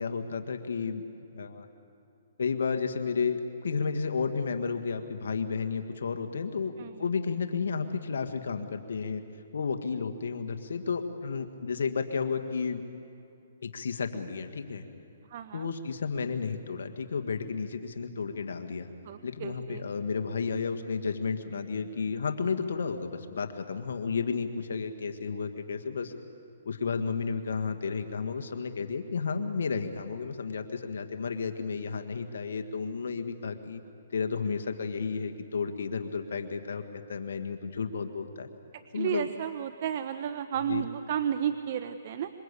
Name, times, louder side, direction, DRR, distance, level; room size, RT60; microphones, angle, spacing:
voice 1, 0.0-1.7 2.4-6.7 7.0-9.2 9.5-12.8 13.6-14.8 15.5-18.9 19.2-26.1 26.7-33.8 34.1-38.5 38.9-39.3 40.7-40.8, left 5 dB, 80° left, 7 dB, 1.8 m, -32 dB
voice 2, 15.3-15.7 19.0-19.8 38.7-42.3, right 9 dB, 50° right, 10 dB, 1.0 m, -33 dB
26.5 x 25.0 x 8.4 m, 2.7 s
hypercardioid pair, 145°, 0 cm